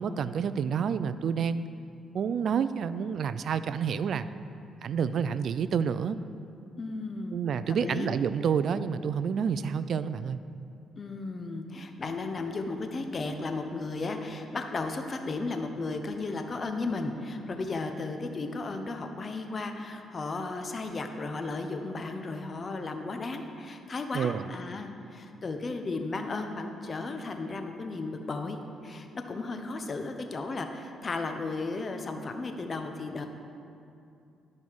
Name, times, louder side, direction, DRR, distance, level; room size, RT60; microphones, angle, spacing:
voice 1, 0.0-1.7 2.1-4.3 4.8-6.2 7.3-10.4 24.1-24.5, right 7 dB, 60° right, 13 dB, 0.3 m, -29 dB
voice 2, 6.8-7.4 7.7-8.1 11.0-33.3, left 3 dB, 35° left, 5 dB, 0.8 m, -35 dB
11.5 x 5.4 x 4.7 m, 2.5 s
cardioid pair, 90°, 0 cm